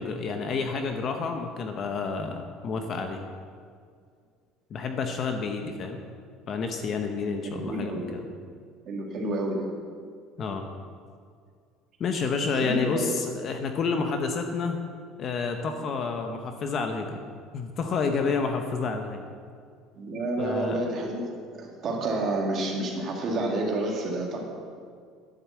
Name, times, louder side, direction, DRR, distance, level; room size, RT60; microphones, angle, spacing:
voice 1, 0.0-3.3 4.7-6.0 6.5-8.2 10.4-10.7 12.0-14.8 15.2-17.2 17.5-19.2 20.4-20.8, left 4 dB, 30° left, 5 dB, 0.8 m, -29 dB
voice 2, 7.4-8.2 8.9-9.7 12.6-13.0 20.0-21.3 21.6-24.4, right 2 dB, 30° right, -1 dB, 2.0 m, -29 dB
10.5 x 7.8 x 7.3 m, 2.1 s
cardioid pair, 180°, 0 cm